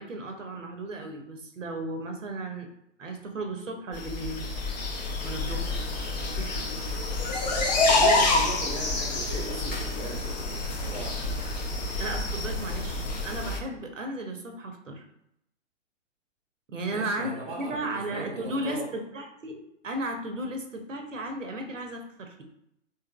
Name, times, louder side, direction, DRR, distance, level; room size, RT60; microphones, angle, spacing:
voice 1, 0.0-2.7 3.0-4.5 5.2-5.8 6.2-6.6 12.0-15.1 16.7-17.3 17.6-22.4, right 1 dB, 85° right, 3 dB, 0.7 m, -35 dB
sound 1, 3.9-13.6, left 2 dB, 35° left, 0.5 m, -28 dB
voice 2, 7.7-11.3 16.8-18.9, right 2 dB, 15° right, -2 dB, 0.7 m, -38 dB
3.2 x 3.2 x 2.2 m, 0.78 s
figure-of-eight pair, 120°, 37 cm